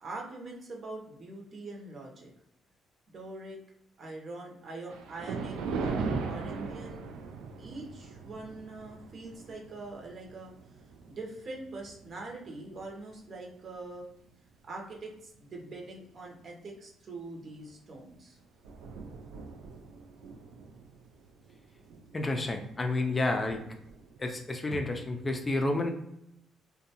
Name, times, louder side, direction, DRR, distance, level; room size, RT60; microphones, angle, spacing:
voice 1, 0.0-2.3 3.1-3.6 4.0-5.6 5.8-7.0 7.6-10.5 11.1-14.1 14.6-18.4, right 2 dB, 50° right, 0 dB, 0.8 m, -43 dB
Thunder, 4.9-13.4 13.9-14.2 14.9-15.0 15.3-15.4 17.6-17.8 18.1-18.2 18.4-24.4, right 4 dB, 90° right, 0.3 m, -40 dB
voice 2, 22.1-23.6 24.2-25.9, left 2 dB, 25° left, 4 dB, 0.4 m, -30 dB
2.5 x 2.2 x 2.8 m, 0.78 s
cardioid pair, 85°, 0 cm